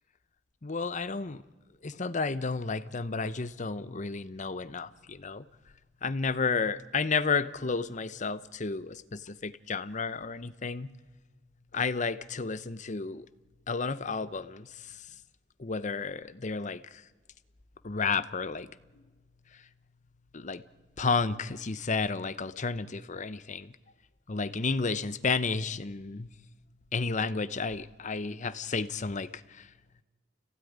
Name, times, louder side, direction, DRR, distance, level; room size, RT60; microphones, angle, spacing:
voice 1, 0.6-1.4 1.8-5.4 6.0-10.9 11.7-13.3 13.7-15.0 15.6-17.0 17.8-18.7 20.3-20.6 21.0-23.8 24.3-26.3 26.9-29.7, left 4 dB, 40° left, 15 dB, 0.8 m, -32 dB
28.5 x 16.5 x 9.5 m, 1.3 s
head